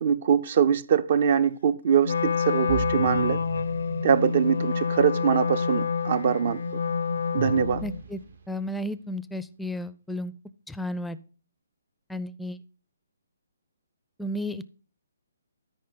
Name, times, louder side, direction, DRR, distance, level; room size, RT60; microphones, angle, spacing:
voice 1, 0.0-3.4 4.0-6.6 7.3-7.8, right 7 dB, 50° right, 0.6 m, -23 dB
Wind instrument woodwind instrument, 2.0-8.0, left 6 dB, 65° left, 0.4 m, -28 dB
sound 1, 2.7-8.6, right 3 dB, 65° right, 1.2 m, -37 dB
voice 2, 7.8-8.2 8.5-10.3 10.7-11.2 12.1-12.6 14.2-14.6, left 1 dB, 5° left, 0.4 m, -33 dB
13.0 x 5.2 x 3.9 m
figure-of-eight pair, 140°, 0 cm